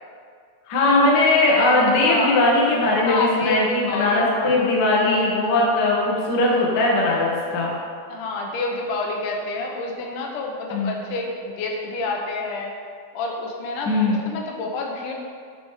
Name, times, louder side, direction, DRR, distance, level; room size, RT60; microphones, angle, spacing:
voice 1, 0.7-7.7 10.7-10.9 13.8-14.2, left 2 dB, 90° left, -3 dB, 0.9 m, -19 dB
voice 2, 2.0-2.4 3.1-4.7 8.1-12.7 13.1-15.1, left 3 dB, 75° left, 0 dB, 2.2 m, -28 dB
8.0 x 5.1 x 4.7 m, 2.1 s
omnidirectional pair, 4.1 m